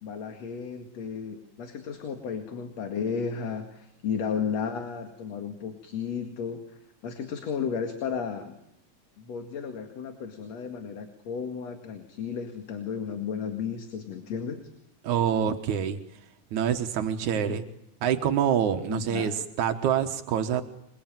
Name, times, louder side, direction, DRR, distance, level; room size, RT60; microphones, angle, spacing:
voice 1, 0.0-6.8 7.0-8.5 9.2-14.6 17.3-17.6 18.9-19.3, left 6 dB, 65° left, 6 dB, 3.2 m, -33 dB
voice 2, 15.0-16.0 16.5-17.6 18.0-20.6, right 8 dB, 85° right, 6 dB, 2.7 m, -26 dB
27.0 x 22.5 x 9.0 m, 0.74 s
omnidirectional pair, 3.4 m